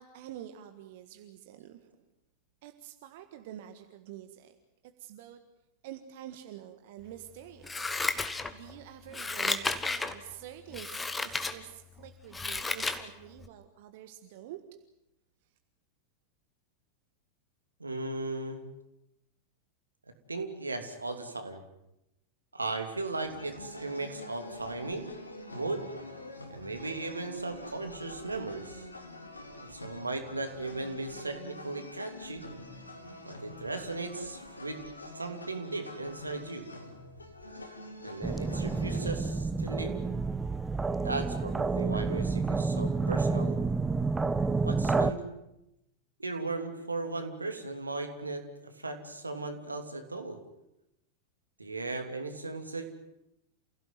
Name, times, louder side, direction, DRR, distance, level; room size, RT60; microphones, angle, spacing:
voice 1, 0.0-2.0 2.6-4.6 5.0-5.4 5.8-8.0 8.5-14.6, right 12 dB, 50° right, 8 dB, 1.6 m, -47 dB
Scissors, 7.6-8.7 9.1-10.1 10.7-11.5 12.0-13.0 13.4-13.5, left 3 dB, 10° left, 1.8 m, -32 dB
voice 2, 17.8-18.6 20.3-21.6 22.5-25.1 25.5-25.9 26.5-28.9 29.6-32.4 33.2-34.8 35.1-36.7 38.0-40.0 41.0-43.6 44.6-45.2 46.2-50.4 51.6-52.9, right 3 dB, 80° right, 6 dB, 2.9 m, -37 dB
sound 1, 23.1-39.1, left 2 dB, 80° left, 3.1 m, -46 dB
sound 2, 38.2-45.1, right 4 dB, 10° right, 1.0 m, -29 dB
29.0 x 17.0 x 9.4 m, 0.87 s
figure-of-eight pair, 90°, 0 cm